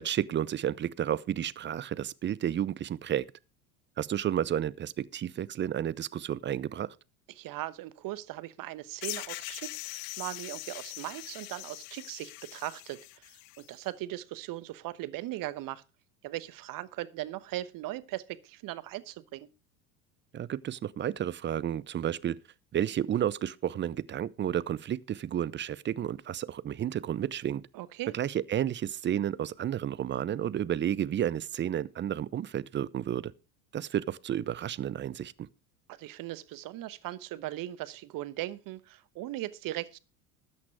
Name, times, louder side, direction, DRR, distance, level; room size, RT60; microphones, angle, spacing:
voice 1, 0.0-3.3 4.0-6.9 20.3-22.4 22.7-27.6 28.1-33.3 33.7-35.5, right 10 dB, 25° right, 0.6 m, -31 dB
voice 2, 7.4-15.8 16.2-19.5 27.7-28.1 35.9-40.0, right 15 dB, 45° right, 1.2 m, -39 dB
sound 1, 9.0-13.7, left 21 dB, 50° left, 0.7 m, -42 dB
13.0 x 8.6 x 4.7 m
hypercardioid pair, 80°, 45 cm